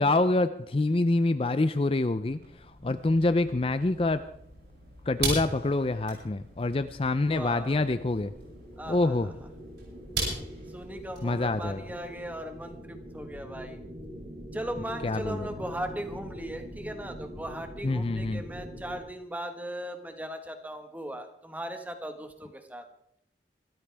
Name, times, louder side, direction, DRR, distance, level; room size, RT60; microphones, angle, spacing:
voice 1, 0.0-4.2 5.1-8.3 8.9-9.3 11.2-11.8 15.0-15.5 17.8-18.4, left 2 dB, 30° left, 12 dB, 0.5 m, -26 dB
sound 1, 2.2-12.7, right 3 dB, 75° right, 7.6 m, -39 dB
voice 2, 7.3-7.9 8.8-9.3 10.7-13.8 14.5-22.8, right 1 dB, 10° right, 6 dB, 1.4 m, -38 dB
sound 2, 7.8-19.0, equal, 45° right, 6.6 m, -44 dB
25.0 x 13.5 x 3.4 m, 0.71 s
head